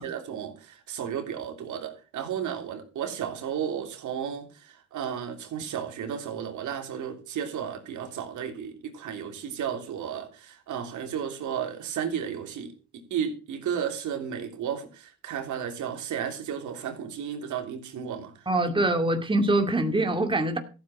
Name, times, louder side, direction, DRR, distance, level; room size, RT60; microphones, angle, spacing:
voice 1, 0.0-12.7 13.1-18.5, right 8 dB, 75° right, 3.4 m, -33 dB
voice 2, 18.5-20.6, right 2 dB, 15° right, 2.4 m, -24 dB
14.5 x 7.9 x 6.4 m
cardioid pair, 90°, 30 cm